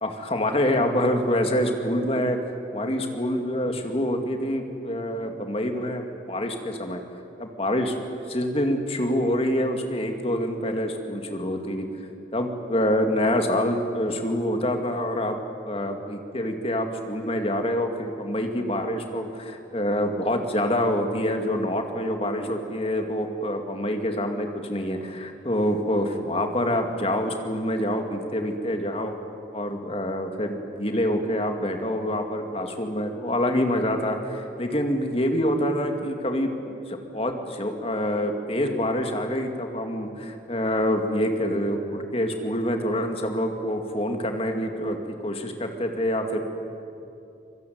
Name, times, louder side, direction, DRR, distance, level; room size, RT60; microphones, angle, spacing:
voice 1, 0.0-2.4 2.7-7.0 7.4-7.9 8.3-11.9 12.3-15.4 15.6-29.1 29.5-46.4, equal, 30° left, 5 dB, 2.4 m, -26 dB
24.5 x 22.5 x 9.5 m, 2.7 s
head